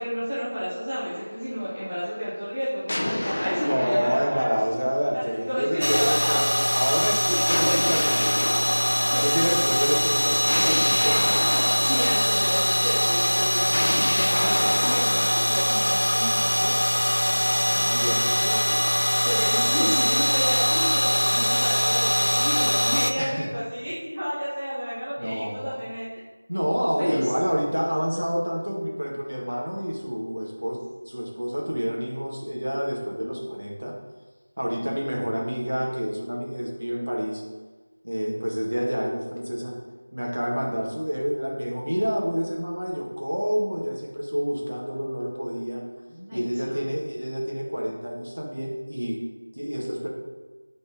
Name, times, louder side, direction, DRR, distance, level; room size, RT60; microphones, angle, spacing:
voice 1, 0.0-4.5 5.1-6.4 7.2-8.0 9.1-9.6 11.0-11.2 11.8-16.8 17.7-18.1 18.4-26.1 27.0-27.3 46.1-46.8, equal, 10° right, -12 dB, 0.7 m, -31 dB
sound 1, 1.0-2.1 2.9-5.5 7.5-9.6 10.5-12.8 13.7-17.5, left 1 dB, 20° left, 0.4 m, -30 dB
voice 2, 3.6-8.6 9.0-11.3 17.2-18.3 23.2-23.5 25.2-25.9 26.5-34.0 34.6-37.4 38.0-39.8 40.1-45.8 46.3-49.2 49.6-50.1, equal, 90° right, -2 dB, 1.7 m, -28 dB
sound 2, 5.8-23.1, equal, 85° left, 0.6 m, -22 dB
6.8 x 4.1 x 3.7 m, 1.3 s
figure-of-eight pair, 180°, 0 cm